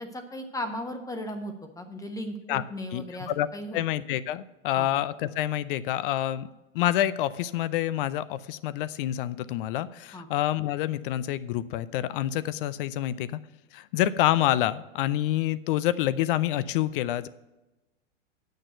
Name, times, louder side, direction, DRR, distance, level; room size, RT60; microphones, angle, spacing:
voice 1, 0.0-3.8 4.8-4.9 10.1-10.3, equal, 10° left, 6 dB, 1.1 m, -36 dB
voice 2, 2.9-3.5 3.7-6.5 6.7-13.4 13.7-17.3, left 13 dB, 45° left, 16 dB, 0.6 m, -27 dB
8.8 x 6.6 x 7.8 m, 1.0 s
hypercardioid pair, 115°, 37 cm